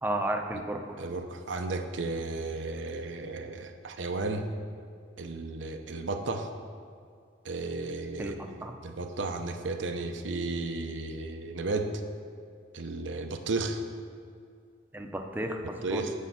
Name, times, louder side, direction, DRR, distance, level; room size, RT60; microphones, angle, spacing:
voice 1, 0.0-1.1 8.2-8.3 8.6-8.7 14.9-16.0, right 1 dB, 10° right, 3 dB, 0.5 m, -33 dB
voice 2, 1.0-4.5 5.2-6.5 7.4-11.9 12.7-13.8 15.8-16.1, right 3 dB, 90° right, 5 dB, 0.7 m, -34 dB
8.3 x 4.5 x 7.2 m, 2.3 s
head